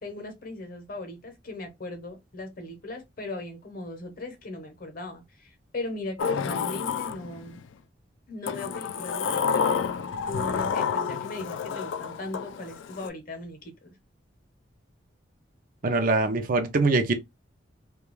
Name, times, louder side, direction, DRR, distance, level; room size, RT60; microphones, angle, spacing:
voice 1, 0.0-7.6 8.3-9.8 10.3-13.9, left 2 dB, 50° left, 0.8 m, -38 dB
Sliding door, 6.2-7.7 8.5-13.1, left 6 dB, 80° left, 0.3 m, -29 dB
voice 2, 15.8-17.1, right 3 dB, 50° right, 0.5 m, -23 dB
2.3 x 2.3 x 3.1 m
head